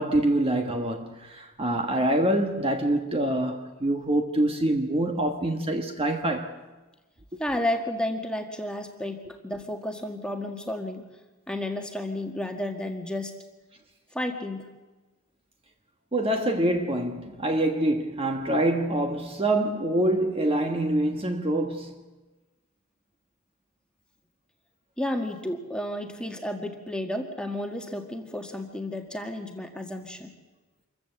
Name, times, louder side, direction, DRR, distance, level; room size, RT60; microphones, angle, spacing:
voice 1, 0.0-6.5 16.1-21.9, right 1 dB, 25° right, 1.3 m, -25 dB
voice 2, 7.4-11.1 11.5-13.3 14.1-14.7 25.0-30.3, left 1 dB, 5° left, 1.7 m, -32 dB
26.0 x 15.0 x 7.9 m
head